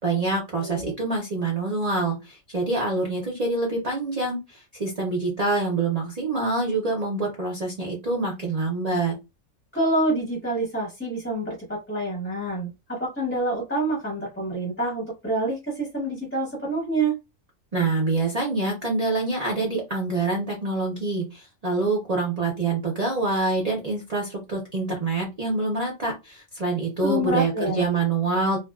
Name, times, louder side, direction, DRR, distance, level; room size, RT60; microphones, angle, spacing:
voice 1, 0.0-4.4 4.8-9.2 17.7-28.6, right 3 dB, 40° right, -1 dB, 0.5 m, -26 dB
voice 2, 0.6-0.9 9.7-17.1 27.0-27.9, right 1 dB, 10° left, -4 dB, 0.8 m, -27 dB
2.5 x 2.2 x 2.3 m, 0.25 s
omnidirectional pair, 1.5 m